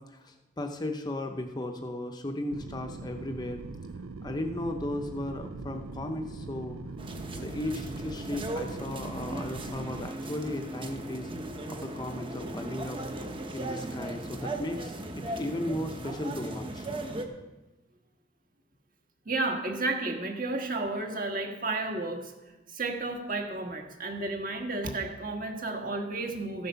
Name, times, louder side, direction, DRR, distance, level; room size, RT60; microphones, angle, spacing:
voice 1, 0.0-3.6 4.2-6.8 7.3-11.3 11.7-13.3 13.5-16.9, left 1 dB, 20° left, 5 dB, 0.7 m, -36 dB
sound 1, 2.5-10.1, right 3 dB, 90° right, 0.5 m, -41 dB
sound 2, 7.0-17.3, right 1 dB, 25° right, 1.0 m, -37 dB
voice 2, 19.2-22.3 22.7-26.7, right 2 dB, 40° right, 3 dB, 1.6 m, -32 dB
14.0 x 7.7 x 5.7 m, 1.1 s
head